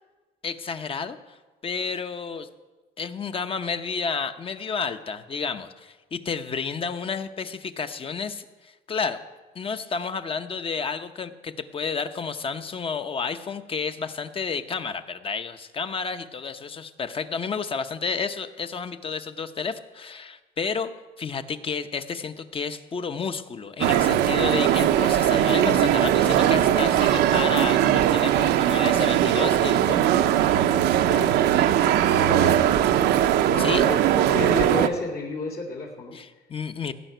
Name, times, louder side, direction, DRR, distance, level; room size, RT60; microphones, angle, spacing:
voice 1, 0.4-1.4 1.6-2.5 3.0-9.2 9.5-20.9 21.2-30.0 33.6-33.8 36.1-36.9, left 5 dB, 35° left, 9 dB, 0.8 m, -31 dB
sound 1, 23.8-34.9, right 11 dB, 80° right, 0.8 m, -20 dB
voice 2, 31.0-31.3 32.0-32.6 33.5-36.1, left 3 dB, 60° left, -5 dB, 2.4 m, -31 dB
16.5 x 5.8 x 9.1 m, 1.2 s
cardioid pair, 110°, 17 cm